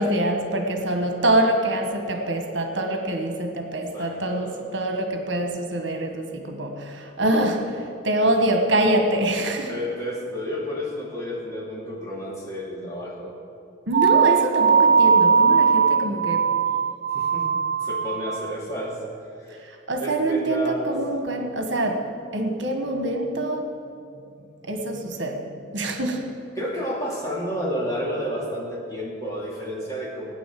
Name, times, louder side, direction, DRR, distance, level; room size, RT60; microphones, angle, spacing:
voice 1, 0.0-9.7 13.9-16.6 19.5-23.8 24.6-26.4, right 1 dB, 70° right, 4 dB, 1.6 m, -25 dB
voice 2, 3.9-4.7 9.4-13.3 16.0-16.1 17.1-17.5 17.8-19.0 19.4-19.6 20.0-21.0 26.6-30.3, equal, 20° left, -4 dB, 2.9 m, -31 dB
sound 1, 13.9-18.6, right 6 dB, 50° right, 0.3 m, -19 dB
16.0 x 9.8 x 7.7 m, 2.4 s
head